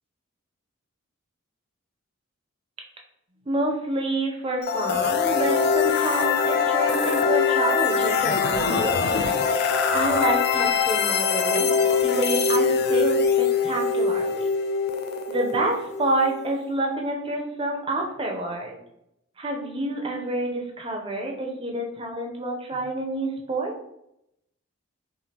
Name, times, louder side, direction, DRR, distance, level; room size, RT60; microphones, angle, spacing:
voice 1, 3.4-8.9 9.9-11.7 12.0-14.5 15.3-18.8 19.4-23.7, right 1 dB, 25° right, 1 dB, 0.5 m, -28 dB
sound 1, 4.6-16.5, left 5 dB, 45° left, 0.3 m, -23 dB
5.0 x 2.4 x 2.8 m, 0.80 s
head